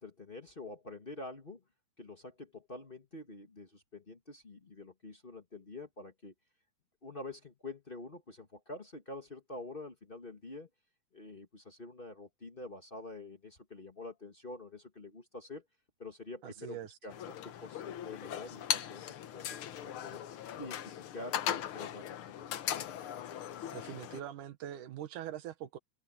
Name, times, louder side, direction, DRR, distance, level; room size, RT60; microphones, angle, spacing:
voice 1, 0.0-1.6 2.0-6.3 7.0-10.7 11.1-15.6 16.0-20.2 20.6-22.6, left 2 dB, 30° left, 1.1 m, -47 dB
voice 2, 16.4-17.0 23.7-25.8, right 11 dB, 90° right, 2.8 m, -43 dB
sound 1, 17.1-24.2, left 10 dB, 65° left, 1.4 m, -39 dB
omnidirectional pair, 3.5 m